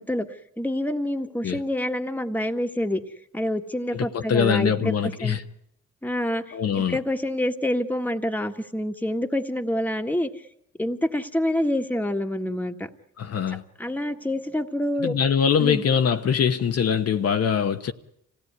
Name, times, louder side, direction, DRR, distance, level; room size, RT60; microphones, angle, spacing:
voice 1, 0.6-3.0 3.3-5.4 6.0-10.3 10.8-12.9 13.8-15.1 15.6-15.8, left 1 dB, 5° left, 1.7 m, -27 dB
voice 2, 3.9-5.4 6.5-7.0 13.2-13.6 15.0-17.9, left 7 dB, 55° left, 1.1 m, -23 dB
26.0 x 17.0 x 9.5 m
cardioid pair, 90°, 30 cm